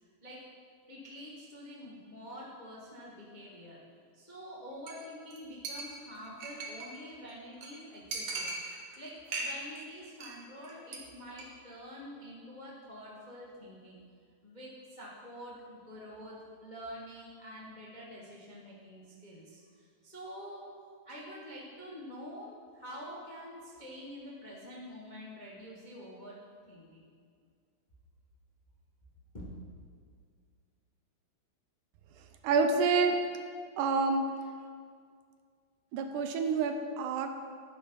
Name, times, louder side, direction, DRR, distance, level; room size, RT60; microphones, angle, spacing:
voice 1, 0.9-3.8 4.1-14.0 14.4-20.7 21.0-26.4 26.7-27.1 29.3-29.4, equal, 75° left, -5 dB, 0.4 m, -47 dB
Chink clink, 4.9-5.1 5.3-5.4 5.7-7.0 7.3-7.4 7.6-7.7 8.1-9.0 9.3-9.8 10.1-10.4 10.6-11.0 11.3-11.4, right 3 dB, 55° right, 2.2 m, -39 dB
voice 2, 32.4-33.2 33.8-34.3 35.9-37.3, right 4 dB, 80° right, 6 dB, 2.1 m, -28 dB
11.5 x 11.0 x 4.0 m, 2.1 s
omnidirectional pair, 3.9 m